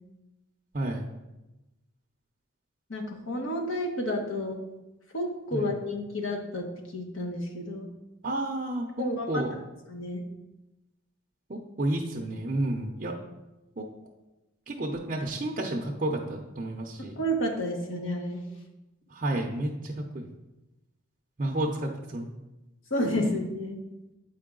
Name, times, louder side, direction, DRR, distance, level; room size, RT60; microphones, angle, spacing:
voice 1, 0.7-1.1 5.5-5.7 8.2-9.5 11.5-13.2 13.8-13.9 14.7-17.1 19.1-20.3 21.4-22.3, right 1 dB, 35° right, -1 dB, 0.5 m, -31 dB
voice 2, 2.9-4.6 5.1-6.7 6.9-7.9 9.0-9.4 9.9-10.2 17.2-18.5 22.9-23.8, equal, 60° left, 1 dB, 1.2 m, -30 dB
8.4 x 4.7 x 3.7 m, 1.0 s
head